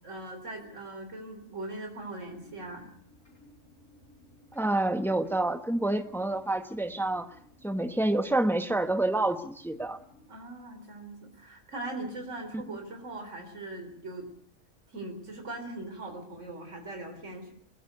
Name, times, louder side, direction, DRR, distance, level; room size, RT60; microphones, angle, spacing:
voice 1, 0.0-2.9 10.3-14.3 14.9-17.5, right 2 dB, 70° right, 5 dB, 4.2 m, -40 dB
sound 1, 2.2-10.3, left 1 dB, 80° left, 6.6 m, -58 dB
voice 2, 4.5-7.3 7.6-10.0, right 2 dB, ahead, 8 dB, 1.2 m, -28 dB
21.5 x 21.0 x 6.7 m, 0.63 s
omnidirectional pair, 1.3 m